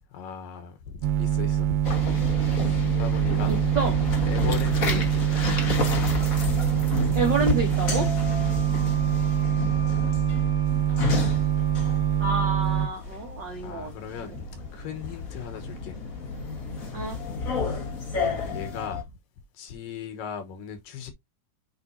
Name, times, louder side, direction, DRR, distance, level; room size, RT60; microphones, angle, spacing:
voice 1, 0.1-1.8 2.6-3.6 4.3-5.3 8.4-8.7 13.6-16.0 17.5-19.1 19.5-21.1, left 7 dB, 85° left, 2.9 m, -38 dB
sound 1, 1.0-12.9, right 10 dB, 80° right, 2.1 m, -24 dB
sound 2, 1.8-19.0, left 4 dB, 65° left, 0.8 m, -31 dB
voice 2, 3.5-3.9 7.1-8.1 12.2-13.9 16.9-17.2, right 4 dB, 60° right, 1.1 m, -28 dB
Wind instrument woodwind instrument, 8.2-12.5, left 1 dB, 40° left, 1.2 m, -44 dB
7.6 x 5.0 x 2.7 m
omnidirectional pair, 3.9 m